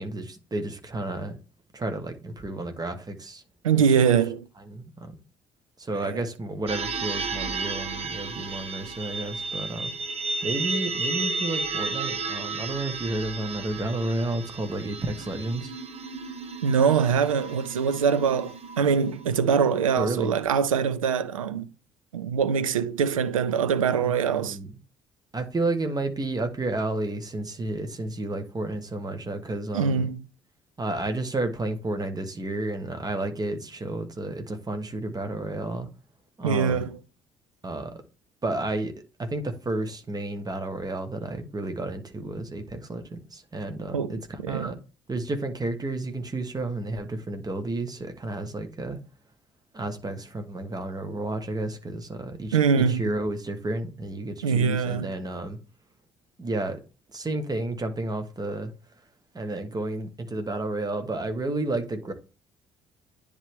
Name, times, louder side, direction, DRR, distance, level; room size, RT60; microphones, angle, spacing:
voice 1, 0.0-1.4 1.7-3.4 3.7-3.8 4.7-5.2 5.8-9.9 10.4-15.7 20.0-20.3 24.0-24.7 25.3-30.1 30.8-35.9 36.4-36.9 37.6-38.0 38.4-38.9 39.2-44.8 45.1-49.0 49.7-55.6 56.4-56.8 57.1-58.7 59.3-62.1, right 2 dB, 20° right, 1.3 m, -31 dB
voice 2, 3.6-4.5 5.9-6.2 16.6-21.7 22.1-24.6 29.7-30.2 36.4-37.0 43.9-44.7 52.5-53.0 54.4-55.1, right 6 dB, 80° right, 0.4 m, -23 dB
sound 1, 6.7-19.2, right 4 dB, 40° right, 1.0 m, -33 dB
9.8 x 3.3 x 3.5 m
figure-of-eight pair, 50°, 17 cm